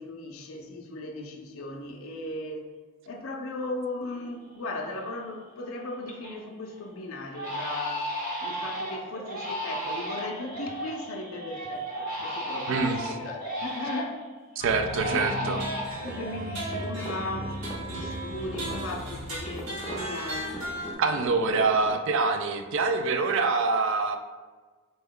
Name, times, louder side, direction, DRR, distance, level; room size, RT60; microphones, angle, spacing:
voice 1, 0.0-2.6 3.1-8.1 8.4-14.2 15.1-15.6 16.0-17.6 17.9-20.5, left 2 dB, 65° left, 2 dB, 0.5 m, -37 dB
Crying sobbing, 4.2-4.3 4.7-5.2 5.6-6.4 6.7-6.9 7.3-14.3 14.7-18.1 18.3-19.8 20.1-20.7, right 1 dB, 40° right, 1.0 m, -35 dB
voice 2, 12.7-13.2 14.6-15.6 21.0-24.2, right 4 dB, 60° right, 6 dB, 0.3 m, -25 dB
sound 1, 14.6-20.9, right 1 dB, 80° right, 1.1 m, -35 dB
sound 2, 16.1-21.9, right 1 dB, 10° left, 0.6 m, -42 dB
4.2 x 2.2 x 3.6 m, 1.4 s
head